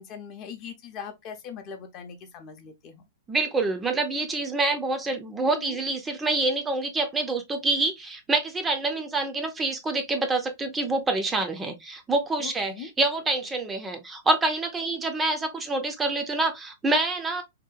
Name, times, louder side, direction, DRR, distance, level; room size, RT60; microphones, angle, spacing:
voice 1, 0.0-3.0 5.5-5.8 12.4-12.9, left 7 dB, 40° left, 0.6 m, -40 dB
voice 2, 3.3-17.4, right 2 dB, 15° right, 0.4 m, -26 dB
2.7 x 2.1 x 2.3 m
hypercardioid pair, 125°, 0 cm